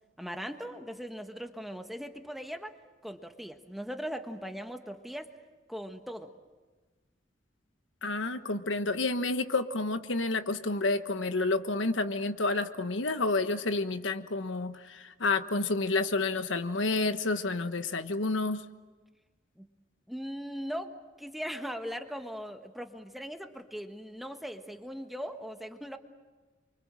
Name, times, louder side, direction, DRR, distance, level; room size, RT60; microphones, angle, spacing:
voice 1, 0.2-2.7 3.0-5.3 5.7-6.3 19.6-19.7 20.1-26.0, equal, ahead, 5 dB, 1.4 m, -39 dB
voice 2, 8.0-18.6, left 3 dB, 90° left, 9 dB, 1.3 m, -29 dB
28.5 x 24.5 x 7.6 m, 1.3 s
head